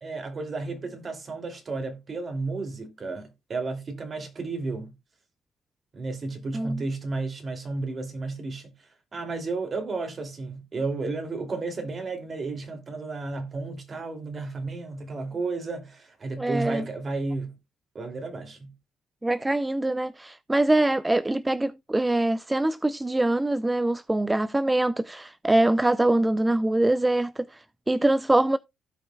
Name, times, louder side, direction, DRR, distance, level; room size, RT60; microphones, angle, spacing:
voice 1, 0.0-4.9 5.9-8.7 9.1-17.6 17.9-18.7, right 3 dB, 40° right, 2.6 m, -33 dB
voice 2, 6.5-6.8 16.4-16.9 19.2-28.6, right 1 dB, 15° right, 0.3 m, -24 dB
15.5 x 5.4 x 2.3 m
supercardioid pair, 80°, 0 cm